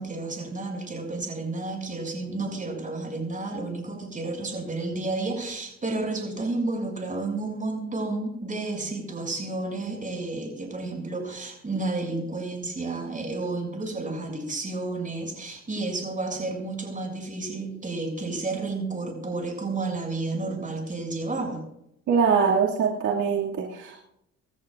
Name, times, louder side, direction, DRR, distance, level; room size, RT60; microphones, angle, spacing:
voice 1, 0.0-21.6, right 3 dB, 25° right, 1 dB, 7.0 m, -31 dB
voice 2, 22.1-24.0, right 6 dB, 75° right, -3 dB, 2.5 m, -23 dB
26.5 x 13.5 x 2.5 m, 0.79 s
cardioid pair, 90°, 30 cm